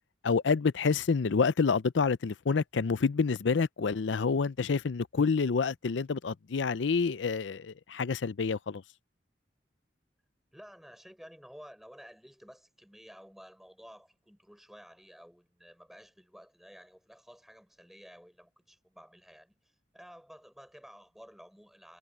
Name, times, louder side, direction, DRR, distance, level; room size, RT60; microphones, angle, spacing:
voice 1, 0.2-8.8, left 5 dB, 85° left, 0.5 m, -28 dB
voice 2, 10.5-22.0, equal, ahead, 5.2 m, -53 dB
head